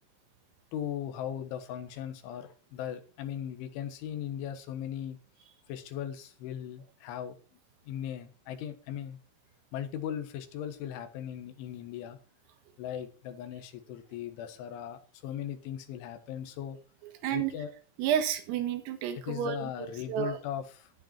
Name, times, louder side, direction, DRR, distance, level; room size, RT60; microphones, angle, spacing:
voice 1, 0.7-5.2 5.7-7.4 7.8-9.2 9.7-12.2 12.8-16.8 17.3-17.7 19.2-20.9, left 10 dB, 70° left, 8 dB, 3.6 m, -38 dB
voice 2, 18.0-20.4, right 9 dB, 85° right, 8 dB, 4.1 m, -31 dB
12.5 x 10.5 x 4.4 m, 0.35 s
omnidirectional pair, 6.0 m